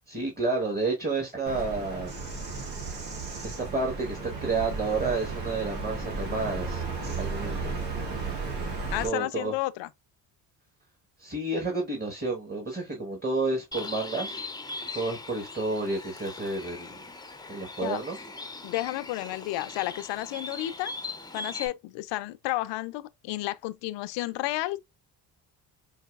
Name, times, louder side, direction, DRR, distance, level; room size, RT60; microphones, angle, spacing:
voice 1, 0.1-2.1 3.4-6.9 7.1-7.7 9.0-9.5 11.2-14.4 14.9-17.1 17.5-18.2, right 3 dB, 20° right, 1.3 m, -30 dB
Bird vocalization bird call bird song, 1.5-9.1, right 4 dB, 75° right, 1.8 m, -34 dB
voice 2, 8.9-9.9 17.8-18.0 18.6-20.9 21.3-24.8, left 17 dB, 75° left, 0.5 m, -32 dB
Bird, 13.7-21.7, left 3 dB, 10° left, 0.6 m, -40 dB
4.6 x 2.8 x 2.4 m
supercardioid pair, 65°, 44 cm